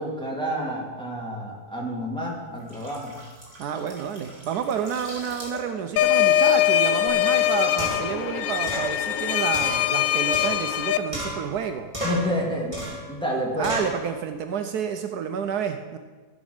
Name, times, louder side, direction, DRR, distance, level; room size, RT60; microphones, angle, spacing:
voice 1, 0.0-3.2 12.0-13.7, equal, 5° left, -3 dB, 2.1 m, -29 dB
sound 1, 2.4-7.2 7.5-7.8, equal, 45° right, 3.0 m, -43 dB
voice 2, 3.6-11.9 13.5-16.0, right 7 dB, 75° right, 7 dB, 1.1 m, -29 dB
sound 2, 6.0-11.0, left 11 dB, 70° left, 0.8 m, -22 dB
sound 3, 7.1-7.2 7.8-8.2 8.7-8.9 9.5-10.8 11.1-11.6 11.9-12.3 12.7-13.1 13.6-14.0, right 1 dB, 20° right, 3.3 m, -32 dB
15.0 x 5.2 x 6.5 m, 1.4 s
omnidirectional pair, 1.8 m